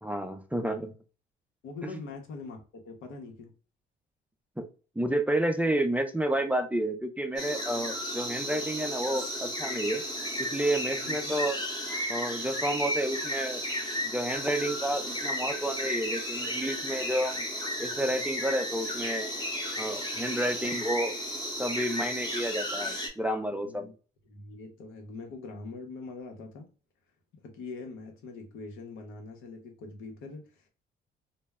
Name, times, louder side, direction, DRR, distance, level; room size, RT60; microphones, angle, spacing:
voice 1, 0.0-0.9 4.6-4.7 5.0-10.0 10.4-11.6 12.1-13.6 14.0-17.4 17.8-19.3 19.8-21.1 21.6-23.9, right 1 dB, 5° right, 0.4 m, -30 dB
voice 2, 1.6-3.5 11.0-11.3 23.5-23.9 24.3-26.7 27.4-30.7, left 3 dB, 85° left, 0.8 m, -43 dB
sound 1, 7.4-23.1, equal, 20° left, 0.8 m, -34 dB
2.1 x 2.0 x 3.4 m
cardioid pair, 90°, 20 cm